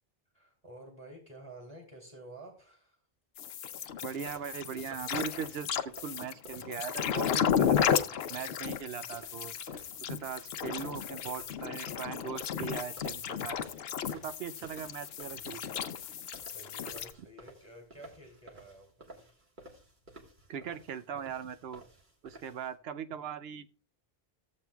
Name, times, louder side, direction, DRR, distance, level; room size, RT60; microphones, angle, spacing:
voice 1, 0.3-3.0 14.1-14.3 16.0-19.3 22.3-22.4, right 1 dB, 30° right, -1 dB, 2.8 m, -51 dB
sound 1, 3.4-17.1, left 8 dB, 75° left, 0.8 m, -33 dB
voice 2, 4.0-7.9 8.3-9.5 10.0-13.6 14.1-15.7 20.5-21.8 22.2-23.7, right 7 dB, 75° right, 11 dB, 0.8 m, -40 dB
sound 2, 4.2-22.7, right 2 dB, 50° right, 1.7 m, -54 dB
14.0 x 7.5 x 2.3 m, 0.36 s
omnidirectional pair, 1.0 m